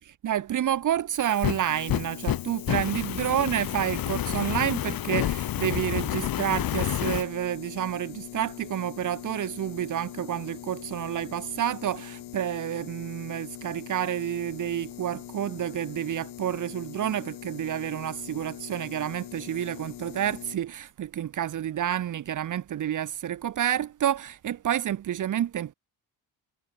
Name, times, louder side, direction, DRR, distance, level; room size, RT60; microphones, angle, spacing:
voice 1, 0.0-25.7, right 10 dB, 50° right, 2.2 m, -29 dB
Fire, 1.1-7.2, left 12 dB, 60° left, 4.4 m, -29 dB
sound 1, 1.7-20.6, left 14 dB, 85° left, 4.8 m, -42 dB
cardioid pair, 170°, 39 cm